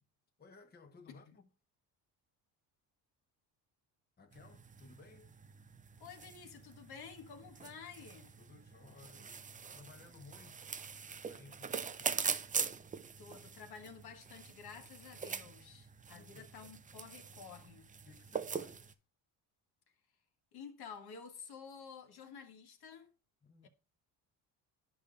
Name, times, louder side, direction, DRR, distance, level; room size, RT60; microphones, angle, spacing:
voice 1, 0.4-1.5 4.2-5.3 8.4-10.7 11.2-12.5 16.1-16.5 18.0-19.0 23.4-23.7, left 3 dB, 20° left, 1.0 m, -58 dB
sound 1, 4.3-18.9, right 6 dB, 20° right, 0.4 m, -43 dB
voice 2, 6.0-8.4 13.2-17.9 20.5-23.1 23.6-23.7, left 6 dB, 60° left, 1.5 m, -51 dB
11.0 x 5.2 x 2.5 m
cardioid pair, 95°, 43 cm